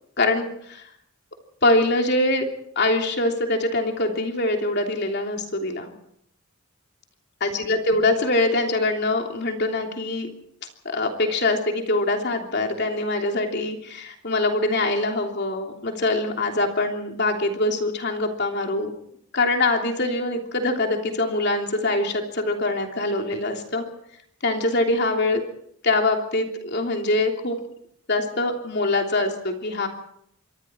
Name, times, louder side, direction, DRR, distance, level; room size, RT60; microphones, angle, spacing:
voice 1, 0.2-0.8 1.6-2.4 2.7-5.9 7.4-10.3 10.8-18.9 19.3-23.9 24.4-25.4 25.8-27.6 28.1-29.9, left 2 dB, 50° left, 2 dB, 3.2 m, -23 dB
26.5 x 23.5 x 4.5 m, 0.71 s
head